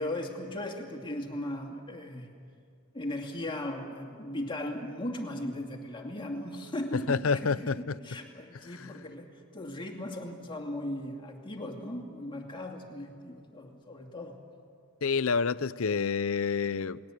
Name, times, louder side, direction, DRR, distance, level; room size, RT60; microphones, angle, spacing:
voice 1, 0.0-2.3 2.9-9.3 9.5-14.4, left 1 dB, 25° left, 1 dB, 2.4 m, -37 dB
voice 2, 7.1-8.0 15.0-17.0, left 5 dB, 70° left, 16 dB, 0.6 m, -28 dB
30.0 x 20.0 x 8.4 m, 2.3 s
head